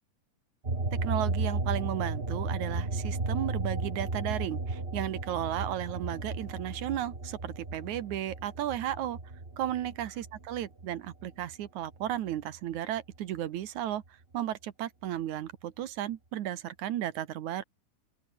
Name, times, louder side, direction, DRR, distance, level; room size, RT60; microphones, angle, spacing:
sound 1, 0.6-11.5 11.9-13.4, right 3 dB, 20° right, 2.8 m, -34 dB
voice 1, 0.9-9.2 9.6-14.0 14.3-17.6, right 12 dB, 65° right, 2.4 m, -34 dB
open air
omnidirectional pair, 3.8 m